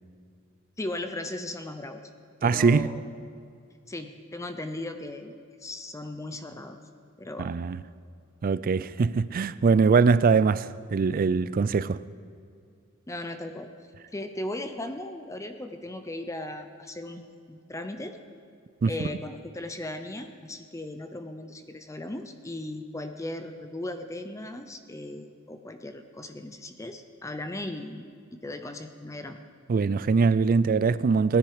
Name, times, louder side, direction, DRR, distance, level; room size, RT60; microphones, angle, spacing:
voice 1, 0.8-2.0 2.4-3.0 3.9-6.8 7.2-7.6 13.1-13.7 14.1-18.2 18.9-29.4, left 1 dB, 15° left, 0.6 m, -37 dB
voice 2, 2.4-2.9 7.4-7.8 8.4-12.0 18.8-18.9 29.7-31.4, right 5 dB, 45° right, 0.4 m, -22 dB
17.5 x 10.0 x 4.9 m
head